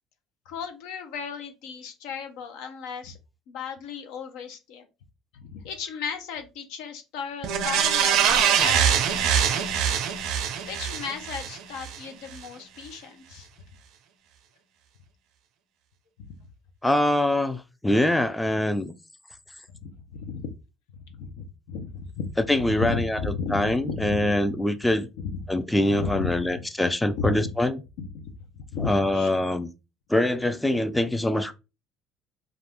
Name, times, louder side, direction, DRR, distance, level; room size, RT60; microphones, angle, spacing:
voice 1, 0.5-3.2 3.5-4.9 5.3-10.0 10.7-13.5 16.2-16.3 19.8-20.5 21.0-22.3 22.6-24.6 25.2-25.4 25.9-26.6 27.2-27.4 28.0-29.3, left 5 dB, 75° left, 0.6 m, -35 dB
sound 1, 7.4-12.0 12.4-12.5, right 8 dB, 70° right, 0.5 m, -23 dB
voice 2, 16.8-18.9 22.5-25.1 25.5-27.8 28.8-29.7 30.1-31.5, left 1 dB, 5° left, 0.4 m, -24 dB
2.4 x 2.3 x 3.4 m
supercardioid pair, 80°, 0 cm